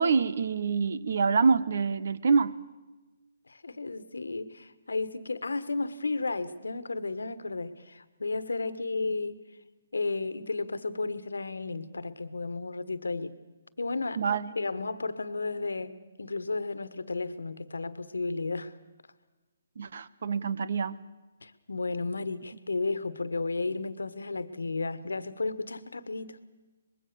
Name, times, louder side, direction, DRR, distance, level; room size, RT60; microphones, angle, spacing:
voice 1, 0.0-2.6 14.2-14.5 19.8-21.0, right 5 dB, 60° right, 1.1 m, -26 dB
voice 2, 3.5-9.4 9.9-13.3 13.8-14.2 14.5-18.7 21.4-26.4, left 3 dB, 80° left, 1.4 m, -33 dB
24.5 x 21.0 x 6.8 m
figure-of-eight pair, 145°, 0 cm